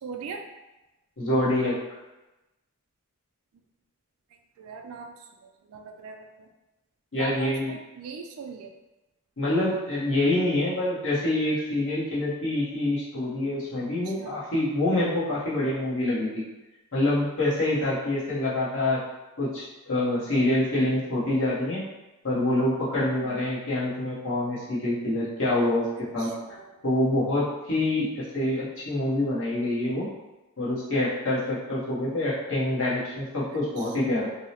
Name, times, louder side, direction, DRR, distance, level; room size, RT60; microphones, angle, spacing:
voice 1, 0.0-0.4 4.6-5.1 5.4-6.5 7.2-8.7 14.1-14.4 23.2-23.4 26.2-26.7 33.8-34.2, right 5 dB, 70° right, 4 dB, 0.3 m, -40 dB
voice 2, 1.2-1.8 7.1-7.7 9.4-16.4 16.9-19.0 19.4-21.8 22.2-25.8 26.1-26.3 26.8-30.1 30.6-34.3, left 1 dB, 60° left, -8 dB, 0.9 m, -26 dB
2.7 x 2.0 x 2.8 m, 1.0 s
head